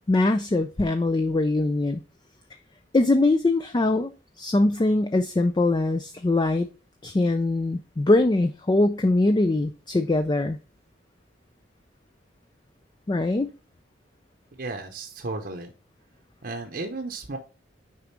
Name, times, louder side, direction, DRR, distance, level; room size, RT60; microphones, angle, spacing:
voice 1, 0.0-2.0 2.9-6.7 7.0-10.6 13.1-13.5, left 2 dB, 25° left, 8 dB, 0.4 m, -22 dB
voice 2, 14.5-15.7 16.4-17.4, right 3 dB, 50° right, 4 dB, 0.8 m, -34 dB
6.7 x 4.9 x 3.1 m, 0.32 s
head